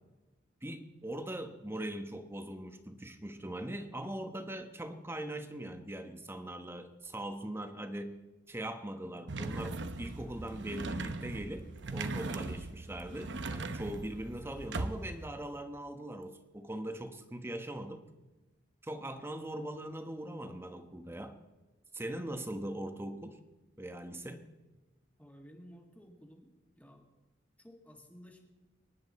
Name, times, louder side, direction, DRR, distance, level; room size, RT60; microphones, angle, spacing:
voice 1, 0.6-8.2 8.5-18.0 18.8-21.4 21.9-23.4 23.8-24.4, right 1 dB, 15° right, 8 dB, 1.1 m, -41 dB
sound 1, 9.3-15.3, right 2 dB, 65° right, 0.9 m, -39 dB
voice 2, 25.2-26.5 26.8-27.1 27.6-28.4, equal, 10° left, 3 dB, 1.9 m, -54 dB
23.5 x 10.5 x 4.2 m, 1.1 s
head